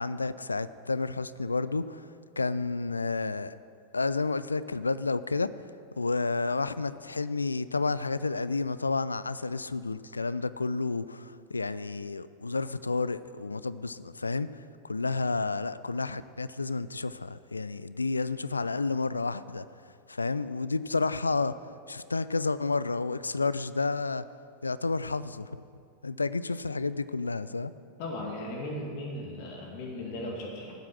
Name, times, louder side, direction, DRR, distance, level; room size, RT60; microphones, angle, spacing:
voice 1, 0.0-2.1 2.4-3.6 3.9-5.5 6.0-19.6 20.1-21.5 21.9-24.2 24.6-25.5 26.0-27.7, left 3 dB, 80° left, 16 dB, 0.3 m, -30 dB
voice 2, 28.0-30.7, left 1 dB, 45° left, 0 dB, 2.1 m, -37 dB
14.0 x 7.8 x 6.0 m, 2.3 s
figure-of-eight pair, 90°, 0 cm